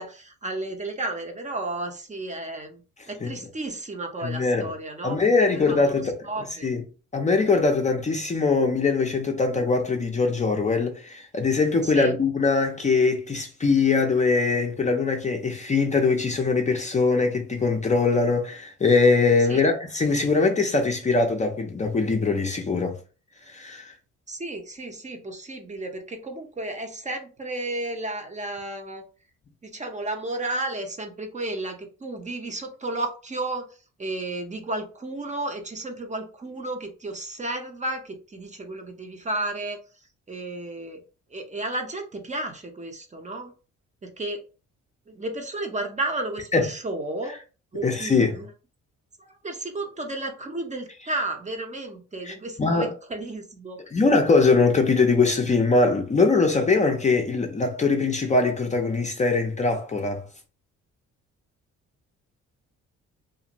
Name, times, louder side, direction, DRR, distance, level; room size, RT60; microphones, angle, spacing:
voice 1, 0.0-6.7 11.8-12.1 19.5-19.6 24.3-29.0 29.6-33.6 34.0-39.8 40.3-41.0 41.3-43.5 44.0-44.4 45.1-47.3 47.7-48.5 49.2-53.8, right 2 dB, 25° right, 0.6 m, -33 dB
voice 2, 4.2-4.7 5.0-6.2 6.6-6.8 7.1-23.0 23.4-23.9 46.5-46.7 47.8-48.4 52.2-52.9 53.9-60.2, left 4 dB, 25° left, 0.5 m, -22 dB
2.5 x 2.4 x 2.9 m
cardioid pair, 90°, 30 cm